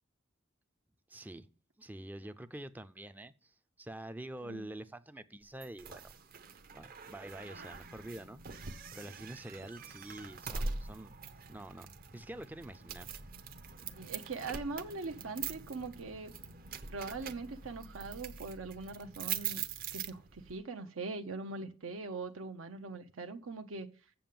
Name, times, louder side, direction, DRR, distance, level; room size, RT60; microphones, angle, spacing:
voice 1, 1.1-1.5 1.8-6.1 6.7-11.1 11.5-11.9 12.1-13.1, right 1 dB, 10° right, 0.4 m, -47 dB
sound 1, 5.6-20.6, right 6 dB, 45° right, 0.7 m, -43 dB
voice 2, 14.0-16.3 16.9-19.6 19.9-23.9, right 3 dB, 75° right, 0.7 m, -41 dB
7.5 x 7.0 x 7.5 m
head